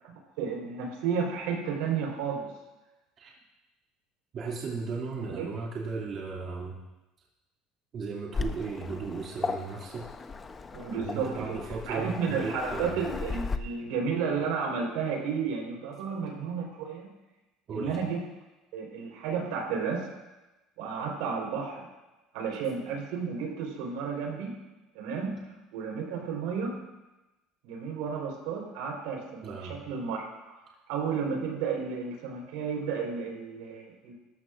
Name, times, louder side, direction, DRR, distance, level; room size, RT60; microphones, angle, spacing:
voice 1, 0.0-2.5 5.2-5.5 10.7-11.6 11.9-17.1 17.7-18.2 18.7-20.1 20.8-21.9 22.3-24.6 24.9-25.4 25.7-26.8 27.6-30.6 30.9-34.1, right 6 dB, 85° right, 0 dB, 4.2 m, -32 dB
voice 2, 4.3-6.8 7.9-10.1 10.9-13.0 17.7-18.0 29.4-29.8, right 4 dB, 40° right, -3 dB, 2.4 m, -36 dB
Waves surf, 8.3-13.6, left 4 dB, 20° left, 0.7 m, -36 dB
19.0 x 13.5 x 2.5 m, 1.1 s
cardioid pair, 130°, 0 cm